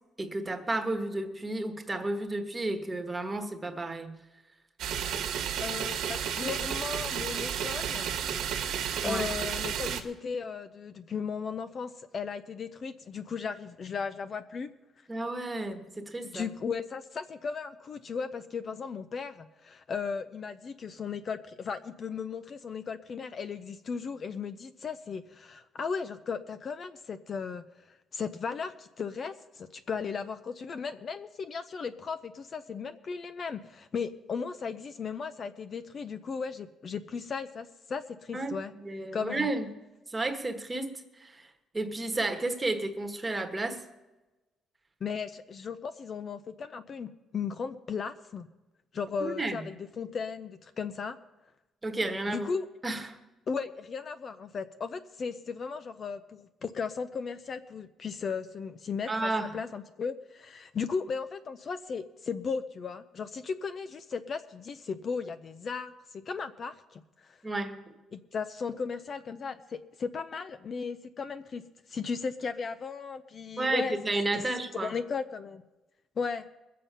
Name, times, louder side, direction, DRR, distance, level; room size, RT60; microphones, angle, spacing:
voice 1, 0.2-4.2 9.0-9.3 15.1-16.5 38.3-38.6 38.8-39.7 40.1-41.5 41.7-43.8 49.2-49.6 51.8-52.5 52.8-53.2 59.1-59.6 67.4-67.8 73.6-74.9, right 2 dB, 15° right, 6 dB, 1.3 m, -32 dB
sound 1, 4.8-10.0, right 8 dB, 80° right, 1.3 m, -32 dB
voice 2, 5.6-8.1 9.0-14.7 16.2-38.7 39.1-39.5 45.0-48.5 48.9-51.2 52.3-52.7 53.5-67.4 68.1-71.6 71.9-73.9 74.3-74.4 74.8-75.6 76.2-76.4, left 5 dB, 40° left, 10 dB, 0.5 m, -36 dB
21.0 x 7.5 x 5.6 m, 1.1 s
cardioid pair, 140°, 0 cm